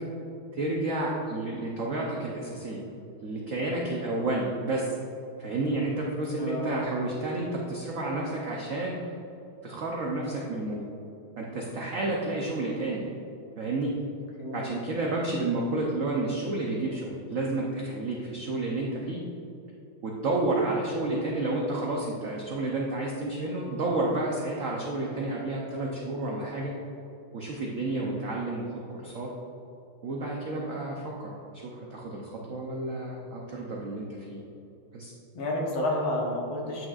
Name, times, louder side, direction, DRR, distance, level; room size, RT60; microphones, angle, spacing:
voice 1, 0.5-2.8 3.2-5.0 5.4-9.0 9.6-10.9 11.4-13.0 13.6-13.9 14.5-19.2 20.0-26.8 27.3-28.6 28.9-29.3 30.0-31.3 31.6-34.4 34.9-35.1, right 2 dB, 75° right, -2 dB, 0.7 m, -30 dB
voice 2, 6.4-6.9 14.4-14.8 35.3-36.9, left 1 dB, 75° left, -2 dB, 2.0 m, -30 dB
8.8 x 6.2 x 2.4 m, 2.8 s
omnidirectional pair, 2.3 m